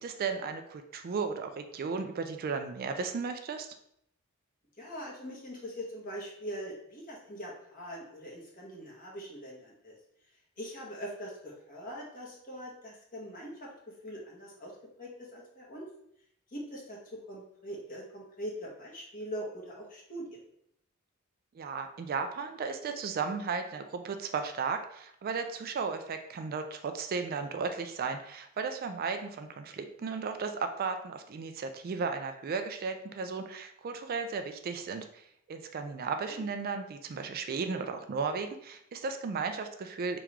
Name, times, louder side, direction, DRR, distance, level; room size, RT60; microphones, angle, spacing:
voice 1, 0.0-3.7 21.5-40.2, right 5 dB, 45° right, 7 dB, 0.4 m, -35 dB
voice 2, 4.8-9.9 10.6-14.7 15.0-15.9 16.5-20.4 36.3-36.5, equal, 40° left, -3 dB, 1.4 m, -42 dB
3.6 x 3.0 x 4.6 m, 0.73 s
head